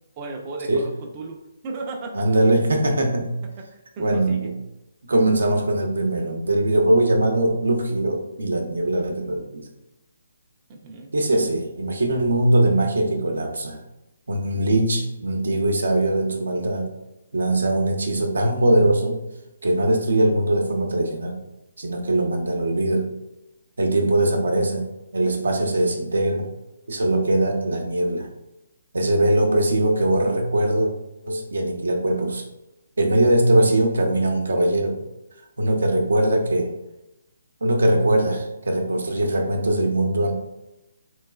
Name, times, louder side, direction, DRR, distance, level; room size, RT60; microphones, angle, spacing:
voice 1, 0.2-1.4 1.6-2.3 3.7-4.5 10.7-11.1, right 3 dB, 30° right, 0 dB, 0.4 m, -35 dB
voice 2, 2.1-3.4 4.0-4.6 5.1-9.6 11.1-13.8 14.3-16.9 17.3-19.2 19.6-21.4 21.8-23.1 23.8-24.8 25.1-26.5 26.9-28.3 28.9-30.9 31.3-32.4 33.0-35.0 35.6-36.7 37.6-40.3, right 1 dB, 75° right, 2 dB, 0.7 m, -21 dB
3.1 x 3.0 x 2.3 m, 0.92 s
figure-of-eight pair, 145°, 0 cm